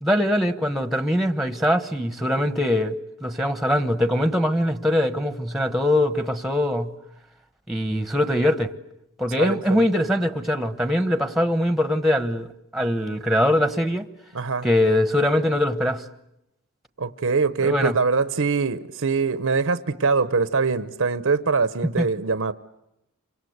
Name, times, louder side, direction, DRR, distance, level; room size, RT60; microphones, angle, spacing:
voice 1, 0.0-6.9 7.7-8.7 9.2-12.5 12.7-14.0 14.6-16.0 17.6-17.9 22.0-22.1, left 1 dB, ahead, 1.2 m, -22 dB
voice 2, 9.4-9.8 14.3-14.7 17.0-22.5, right 4 dB, 60° right, 0.9 m, -23 dB
29.0 x 25.0 x 8.0 m
head